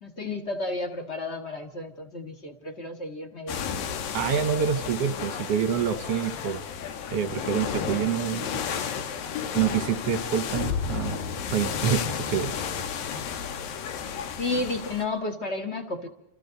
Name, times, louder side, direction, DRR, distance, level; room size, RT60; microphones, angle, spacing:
voice 1, 0.0-3.9 14.4-16.1, left 2 dB, 30° left, 6 dB, 1.3 m, -32 dB
sound 1, 3.5-15.0, left 7 dB, 90° left, 3.3 m, -32 dB
voice 2, 4.1-6.6 7.1-8.6 9.5-11.2 11.5-12.6, right 8 dB, 60° right, 10 dB, 1.8 m, -27 dB
28.5 x 28.0 x 4.0 m, 0.88 s
omnidirectional pair, 3.9 m